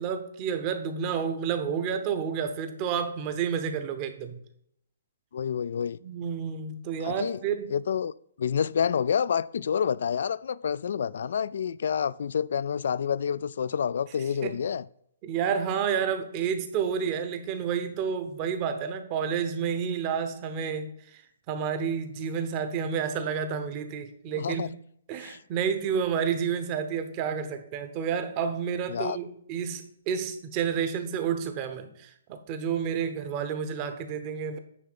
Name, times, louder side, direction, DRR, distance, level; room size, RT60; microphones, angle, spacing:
voice 1, 0.0-4.4 6.0-7.7 14.4-14.6 15.2-24.7 25.1-34.6, right 7 dB, 25° right, 0.9 m, -30 dB
voice 2, 5.3-6.0 7.0-7.4 7.7-8.1 8.4-14.8 24.3-24.7 25.2-25.4 28.9-29.2, left 7 dB, 60° left, 0.3 m, -28 dB
9.5 x 3.3 x 6.7 m
hypercardioid pair, 165°, 0 cm